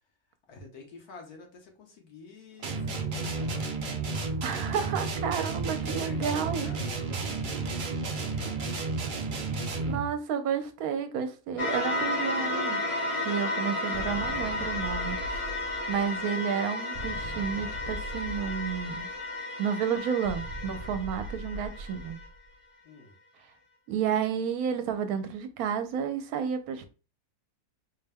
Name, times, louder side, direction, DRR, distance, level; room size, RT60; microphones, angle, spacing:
voice 1, 0.5-3.6 5.8-7.2 7.8-9.1 22.8-23.1, left 4 dB, 80° left, 1.5 m, -49 dB
sound 1, 2.6-10.1, right 3 dB, 60° right, 0.5 m, -32 dB
voice 2, 4.4-6.7 8.4-8.5 9.8-12.8 13.2-15.4 15.9-19.1 19.6-22.2 23.9-26.9, right 7 dB, 75° right, 1.1 m, -31 dB
sound 2, 11.6-22.3, left 2 dB, 30° left, 0.7 m, -33 dB
sound 3, 13.9-16.2 16.9-19.2 20.3-22.5, right 1 dB, 35° right, 0.9 m, -41 dB
4.1 x 2.2 x 3.4 m
omnidirectional pair, 1.6 m